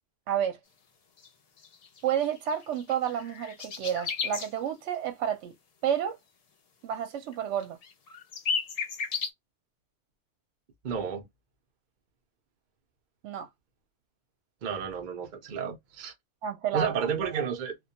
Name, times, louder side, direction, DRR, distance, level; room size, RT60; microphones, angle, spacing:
voice 1, 0.3-0.6 2.0-5.5 5.8-6.2 6.8-7.8 13.2-13.5 16.4-16.9, right 9 dB, 80° right, 0.9 m, -30 dB
sound 1, 1.2-1.3 1.6-4.5 6.9-7.0 7.3-7.4 7.6-9.3, left 5 dB, 55° left, 0.4 m, -34 dB
voice 2, 10.8-11.3 14.6-16.1 16.7-17.8, right 7 dB, 50° right, 0.6 m, -31 dB
2.2 x 2.2 x 2.7 m
omnidirectional pair, 1.2 m